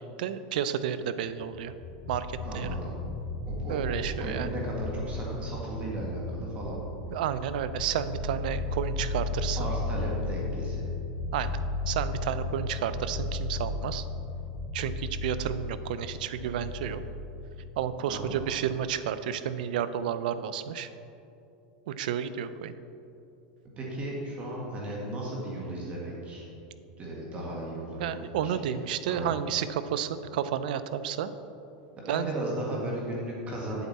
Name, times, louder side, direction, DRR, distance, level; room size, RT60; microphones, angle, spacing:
voice 1, 0.0-1.7 2.1-2.7 3.7-4.5 7.1-9.7 11.3-11.6 11.9-14.1 14.7-17.0 17.8-20.9 21.9-22.7 28.0-31.3 32.1-32.3, right 9 dB, 75° right, 12 dB, 0.4 m, -31 dB
sound 1, 1.4-18.8, left 2 dB, 30° left, 1.8 m, -35 dB
voice 2, 2.4-3.0 3.5-3.8 4.2-6.8 9.6-10.9 18.1-18.4 23.8-26.5 27.0-28.6 29.1-29.4 32.0-33.9, right 1 dB, 25° right, -3 dB, 1.7 m, -35 dB
8.4 x 8.0 x 4.1 m, 2.8 s
supercardioid pair, 140°, 5 cm